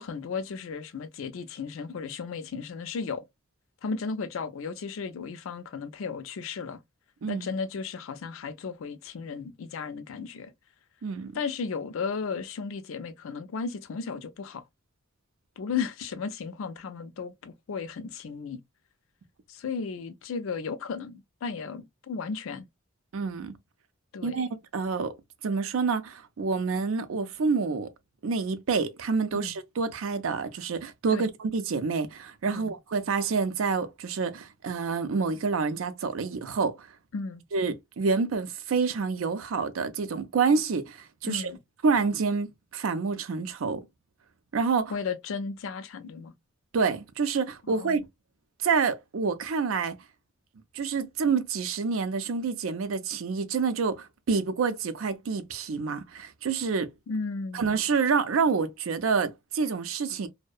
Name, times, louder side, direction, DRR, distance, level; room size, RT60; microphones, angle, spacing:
voice 1, 0.0-3.2 3.8-6.8 7.3-10.5 11.3-14.6 15.6-18.6 19.5-22.7 24.1-24.5 29.4-29.6 31.1-31.3 32.5-32.8 37.1-37.4 41.2-41.6 44.9-46.3 47.7-48.0 57.1-57.7, left 5 dB, 70° left, 0.4 m, -35 dB
voice 2, 11.0-11.4 23.1-23.6 24.2-25.1 25.4-27.9 28.2-36.9 37.5-41.5 41.8-42.5 42.7-43.8 44.5-44.9 46.7-48.0 48.6-50.0 50.7-56.9 57.5-60.3, right 5 dB, 80° right, 0.5 m, -28 dB
2.6 x 2.1 x 2.3 m
head